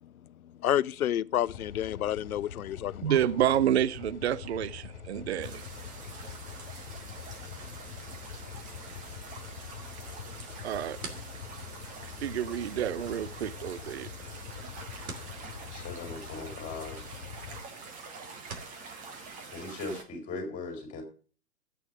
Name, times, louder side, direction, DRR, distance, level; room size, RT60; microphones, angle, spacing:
voice 1, 0.6-3.1, left 11 dB, 65° left, 0.6 m, -29 dB
sound 1, 1.5-17.6, left 8 dB, 40° left, 2.5 m, -44 dB
voice 2, 3.0-5.6 10.6-11.0 12.2-14.1, right 10 dB, 45° right, 0.6 m, -29 dB
sound 2, 5.4-20.0, right 4 dB, 15° right, 1.5 m, -46 dB
sound 3, 10.5-18.8, right 4 dB, 65° right, 2.8 m, -50 dB
voice 3, 15.7-17.0 19.5-21.0, left 3 dB, 15° left, 3.6 m, -39 dB
12.5 x 8.6 x 5.2 m
figure-of-eight pair, 130°, 47 cm